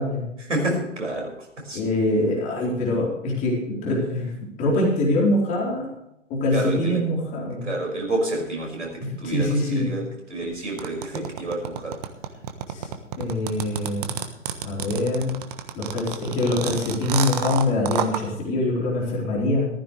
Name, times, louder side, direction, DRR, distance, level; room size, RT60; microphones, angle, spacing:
voice 1, 0.4-1.8 6.5-7.0 7.6-12.0, right 2 dB, 70° right, 1 dB, 5.8 m, -29 dB
voice 2, 1.7-4.3 4.6-5.9 6.3-7.7 9.0-9.9 12.7-12.9 13.2-14.1 14.6-15.4 15.8-19.7, left 1 dB, 20° left, -3 dB, 4.2 m, -24 dB
sound 1, 10.8-18.2, right 9 dB, 30° right, 1.2 m, -29 dB
15.5 x 14.5 x 3.3 m, 0.81 s
figure-of-eight pair, 125°, 38 cm